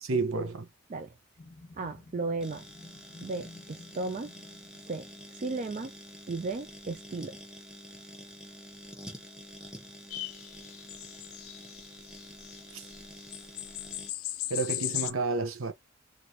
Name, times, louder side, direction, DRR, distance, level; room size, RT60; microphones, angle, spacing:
voice 1, 0.0-0.6 12.7-12.8 14.5-15.7, right 3 dB, 70° right, 0.7 m, -30 dB
sound 1, 1.4-5.3, left 2 dB, 30° left, 0.9 m, -53 dB
voice 2, 1.8-2.6 3.2-4.3 4.9-5.9 6.3-7.4, right 3 dB, 35° right, 0.3 m, -35 dB
sound 2, 2.4-14.1, equal, 5° right, 0.7 m, -48 dB
sound 3, 10.1-12.6 12.9-13.0 13.3-15.1, left 14 dB, 75° left, 0.5 m, -37 dB
3.2 x 2.5 x 2.7 m
head